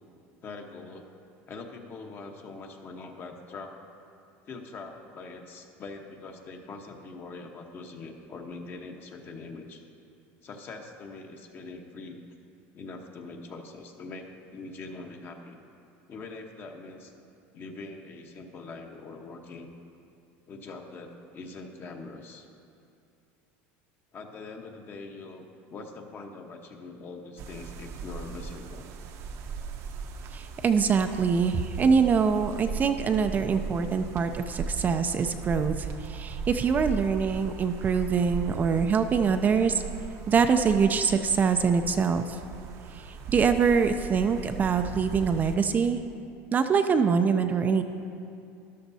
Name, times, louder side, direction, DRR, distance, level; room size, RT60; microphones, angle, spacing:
voice 1, 0.4-1.1 1.5-3.7 4.4-9.8 10.4-12.2 12.7-15.6 16.1-17.1 17.5-19.7 20.5-22.5 24.1-28.9, left 3 dB, 35° left, 3 dB, 1.0 m, -43 dB
sound 1, 27.4-45.6, right 5 dB, 55° right, 0.8 m, -38 dB
voice 2, 30.3-39.8 40.3-42.4 42.9-46.0 46.5-47.8, right 6 dB, 30° right, 7 dB, 0.4 m, -24 dB
13.0 x 11.5 x 2.7 m, 2.5 s
supercardioid pair, 120°, 6 cm